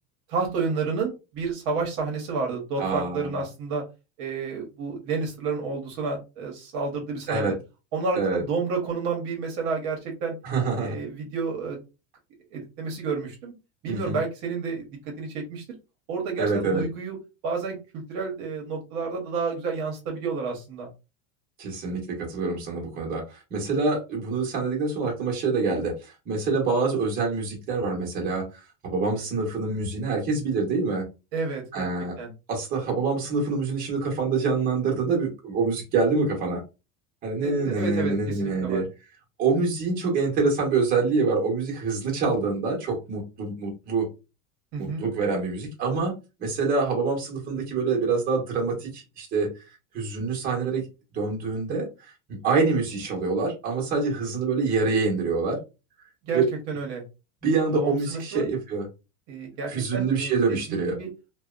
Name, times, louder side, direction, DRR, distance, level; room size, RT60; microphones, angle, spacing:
voice 1, 0.3-3.8 4.2-7.5 7.9-10.3 10.8-11.8 12.5-13.5 13.8-15.6 16.1-17.2 17.4-20.9 31.3-31.9 32.2-32.3 37.4-38.8 44.7-45.1 56.2-56.4 56.7-57.0 57.7-58.5 59.3-61.1, right 4 dB, 50° right, 1 dB, 0.9 m, -30 dB
voice 2, 2.8-3.4 7.3-7.6 8.1-8.4 10.4-11.0 13.9-14.2 16.4-16.8 21.6-31.1 31.7-32.2 32.5-36.6 37.2-38.9 39.4-44.1 44.8-46.1 46.4-49.5 49.9-50.9 51.1-55.6 56.3-56.5 57.4-58.8 59.7-61.0, right 4 dB, 25° right, -1 dB, 0.9 m, -26 dB
2.7 x 2.1 x 2.4 m, 0.28 s
cardioid pair, 170°, 37 cm